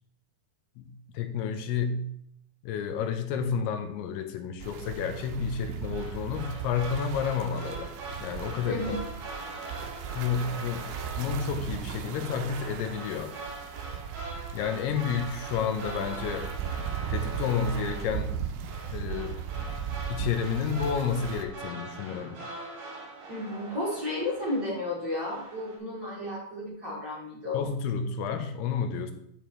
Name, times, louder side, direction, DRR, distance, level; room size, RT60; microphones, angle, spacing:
voice 1, 0.8-2.1 2.6-8.0 8.2-8.8 10.1-10.9 11.2-13.3 14.5-16.5 17.1-18.4 18.9-19.4 20.1-22.4 27.5-29.1, left 6 dB, 80° left, 6 dB, 2.7 m, -30 dB
sound 1, 4.6-21.5, right 8 dB, 80° right, 2.2 m, -37 dB
sound 2, 5.8-24.9 25.2-25.8, right 2 dB, 55° right, 3.1 m, -42 dB
voice 2, 8.6-9.0 23.3-27.7, left 2 dB, 35° right, -7 dB, 2.1 m, -33 dB
8.6 x 7.3 x 3.1 m, 0.72 s
omnidirectional pair, 4.7 m